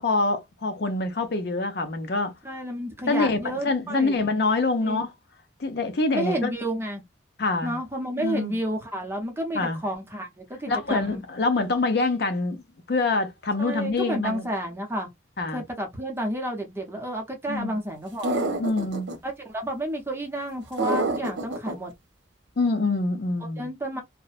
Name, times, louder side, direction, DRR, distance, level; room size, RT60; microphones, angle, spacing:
voice 1, 0.0-2.3 3.1-5.1 5.6-6.5 7.4-7.8 8.2-8.6 9.5-9.8 10.7-14.5 15.4-15.6 17.5-17.8 18.6-19.1 22.6-23.7, left 3 dB, 60° left, 0.5 m, -25 dB
voice 2, 2.4-4.2 4.8-5.0 6.1-7.0 7.6-11.2 13.6-15.1 15.5-18.3 19.2-21.9 23.6-24.0, right 1 dB, 15° right, 0.6 m, -31 dB
sound 1, 18.2-19.2 20.8-21.7, right 2 dB, 85° right, 0.6 m, -26 dB
2.5 x 2.1 x 2.3 m
head